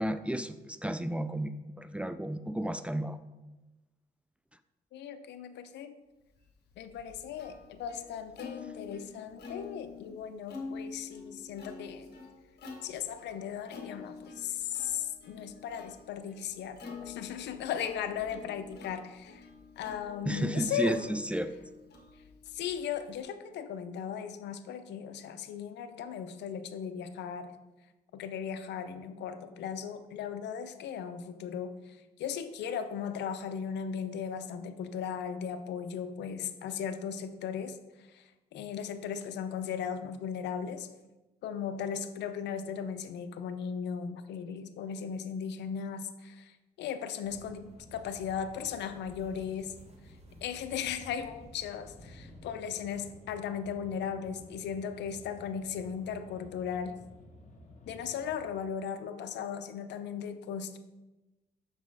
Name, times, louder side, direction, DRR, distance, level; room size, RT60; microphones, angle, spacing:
voice 1, 0.0-1.5 1.8-3.2 20.2-21.5, right 1 dB, 5° right, 11 dB, 0.3 m, -32 dB
voice 2, 4.9-6.0 6.8-12.1 12.8-19.5 19.8-21.0 22.5-27.5 28.1-37.8 38.1-40.9 41.4-49.7 50.4-57.0 57.9-60.8, left 7 dB, 85° left, 10 dB, 0.5 m, -37 dB
Plucked string instrument, 6.5-23.2, left 4 dB, 70° left, 1.2 m, -47 dB
sound 1, 47.2-52.4, right 1 dB, 35° right, 1.3 m, -53 dB
sound 2, 51.9-58.5, left 1 dB, 45° left, 1.2 m, -54 dB
6.4 x 4.1 x 4.7 m, 1.1 s
cardioid pair, 80°, 17 cm